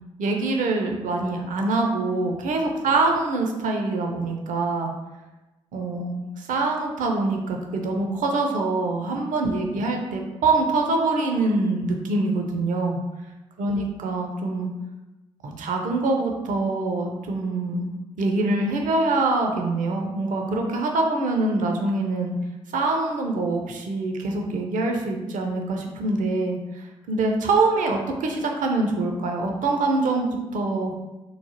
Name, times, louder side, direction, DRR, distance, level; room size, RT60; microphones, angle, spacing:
voice 1, 0.2-4.9 5.7-13.0 13.6-14.7 15.4-17.9 18.2-22.3 22.7-30.9, right 3 dB, 60° right, 2 dB, 0.5 m, -24 dB
3.1 x 2.0 x 2.7 m, 1.1 s
hypercardioid pair, 40°, 15 cm